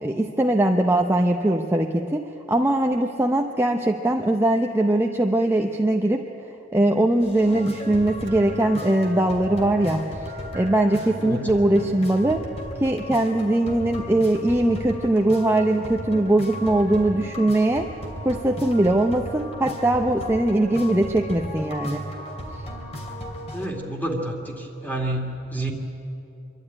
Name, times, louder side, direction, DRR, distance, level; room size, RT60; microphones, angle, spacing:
voice 1, 0.0-6.2 6.7-12.4 12.8-17.9 18.2-22.1, right 1 dB, 15° right, 2 dB, 0.7 m, -21 dB
sound 1, 7.2-23.7, equal, 35° left, 2.8 m, -35 dB
Hammer, 8.3-14.5, left 2 dB, 65° right, 1.7 m, -42 dB
voice 2, 11.2-11.6 23.5-25.7, right 1 dB, 10° left, 1 dB, 2.4 m, -29 dB
25.0 x 12.0 x 9.8 m, 2.9 s
head